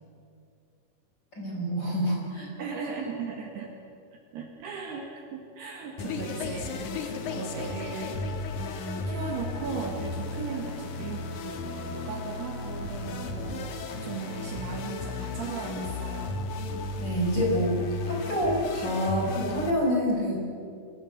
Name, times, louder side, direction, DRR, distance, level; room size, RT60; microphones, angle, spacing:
voice 1, 1.3-2.5 17.0-20.4, equal, 20° left, -3 dB, 4.6 m, -27 dB
voice 2, 2.6-3.7 4.1-8.3 9.1-13.7 14.0-16.4, right 5 dB, 60° right, 1 dB, 3.3 m, -37 dB
sound 1, 6.0-19.7, left 3 dB, 70° left, 1.9 m, -34 dB
25.5 x 16.5 x 8.6 m, 2.4 s
omnidirectional pair, 6.0 m